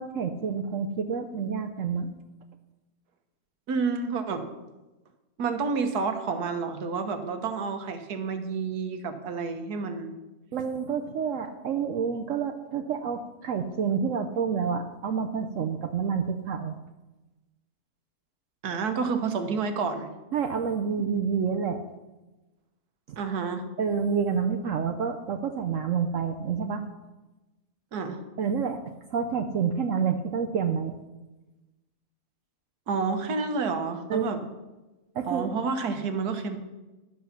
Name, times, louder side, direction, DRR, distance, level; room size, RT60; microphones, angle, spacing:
voice 1, 0.0-2.1 10.5-16.7 20.3-21.8 23.8-26.8 28.4-28.8 29.1-31.0 34.1-34.5 35.2-35.5, right 6 dB, 65° right, 6 dB, 0.9 m, -28 dB
voice 2, 3.7-4.5 5.4-10.1 18.6-20.1 23.2-23.7 27.9-28.2 32.9-34.4 35.3-36.6, right 5 dB, 80° right, 7 dB, 1.6 m, -29 dB
11.0 x 7.5 x 5.8 m, 1.1 s
omnidirectional pair, 1.6 m